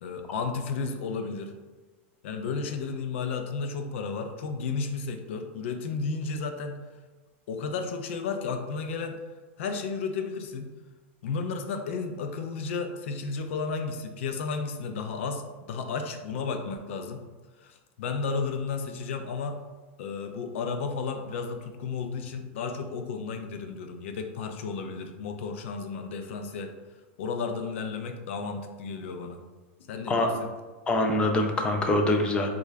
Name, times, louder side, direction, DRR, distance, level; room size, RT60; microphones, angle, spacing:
voice 1, 0.0-1.5 2.2-6.8 7.5-9.2 9.6-10.7 11.2-15.4 15.7-17.2 17.6-19.6 20.0-26.7 27.2-29.4 29.9-30.5, left 4 dB, 70° left, 6 dB, 0.5 m, -33 dB
voice 2, 30.9-32.5, left 1 dB, 15° left, 3 dB, 0.4 m, -24 dB
3.6 x 2.3 x 3.2 m, 1.3 s
supercardioid pair, 150°, 7 cm